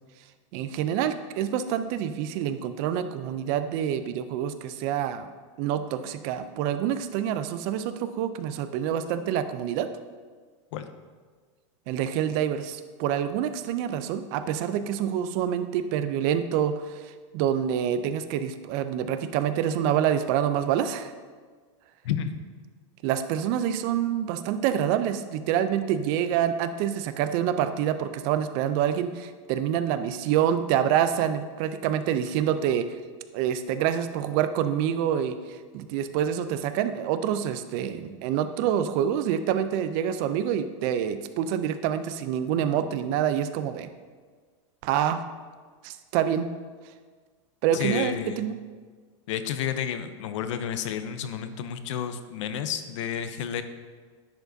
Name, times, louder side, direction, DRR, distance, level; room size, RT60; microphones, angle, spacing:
voice 1, 0.5-5.3 5.6-9.9 11.9-21.1 23.0-32.9 33.3-35.3 35.7-43.9 44.8-45.2 45.8-46.5 47.6-48.5, right 9 dB, 45° right, 11 dB, 0.4 m, -27 dB
voice 2, 47.7-48.5 49.3-53.6, left 9 dB, 70° left, 10 dB, 0.6 m, -31 dB
10.0 x 4.8 x 2.6 m, 1.5 s
supercardioid pair, 140°, 16 cm